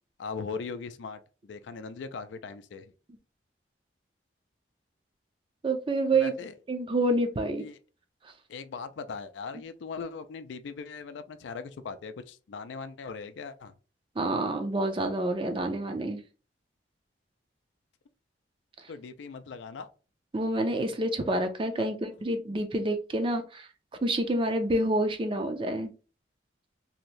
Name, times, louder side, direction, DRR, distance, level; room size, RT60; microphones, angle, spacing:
voice 1, 0.2-2.9 6.1-6.5 7.6-7.8 8.5-13.7 18.9-19.9 21.7-21.9, left 5 dB, 80° left, 0.4 m, -39 dB
voice 2, 5.6-6.3 6.7-7.6 14.2-16.2 20.3-23.7 24.0-25.9, right 1 dB, 30° right, 0.4 m, -28 dB
2.8 x 2.6 x 3.1 m
head